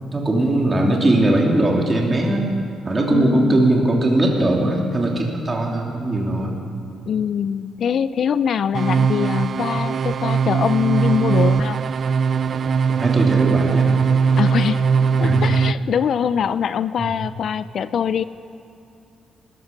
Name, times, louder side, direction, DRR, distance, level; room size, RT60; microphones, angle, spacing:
voice 1, 0.1-2.5 2.8-6.6 13.0-13.9 15.2-15.4 17.0-17.1, right 1 dB, 25° right, -1 dB, 2.9 m, -19 dB
voice 2, 3.1-3.7 7.0-11.8 14.4-14.9 15.2-18.2, left 8 dB, 60° left, 15 dB, 0.4 m, -23 dB
sound 1, 8.7-15.7, right 6 dB, 50° right, 0.3 m, -19 dB
20.5 x 13.0 x 5.3 m, 2.6 s
cardioid pair, 90°, 0 cm